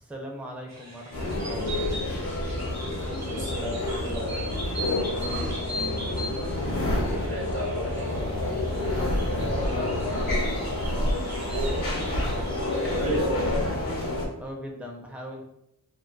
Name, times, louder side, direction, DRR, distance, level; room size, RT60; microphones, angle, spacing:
voice 1, 0.0-2.0 5.1-5.6 8.7-10.1 14.4-15.4, equal, 5° right, 1 dB, 0.4 m, -39 dB
sound 1, 0.7-13.2, equal, 50° right, 0.7 m, -40 dB
sound 2, 1.1-14.2, left 1 dB, 65° left, 0.8 m, -28 dB
voice 2, 3.0-4.4 6.9-8.1 11.5-11.8 12.8-13.4, right 2 dB, 80° right, -5 dB, 0.8 m, -33 dB
2.6 x 2.2 x 2.2 m, 0.80 s
wide cardioid pair, 45°, 36 cm